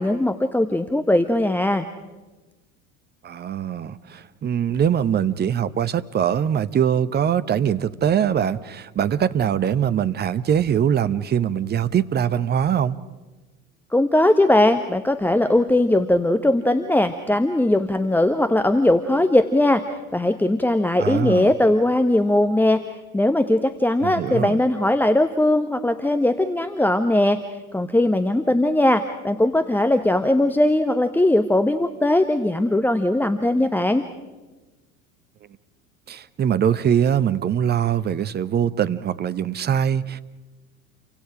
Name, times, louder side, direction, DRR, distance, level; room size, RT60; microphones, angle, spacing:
voice 1, 0.0-1.9 13.9-27.4 27.7-34.0, left 1 dB, 5° left, 9 dB, 1.0 m, -19 dB
voice 2, 3.2-13.0 21.0-21.5 24.0-24.6 36.1-40.2, right 9 dB, 25° right, 13 dB, 0.9 m, -22 dB
29.5 x 24.5 x 5.0 m, 1.2 s
figure-of-eight pair, 75°, 42 cm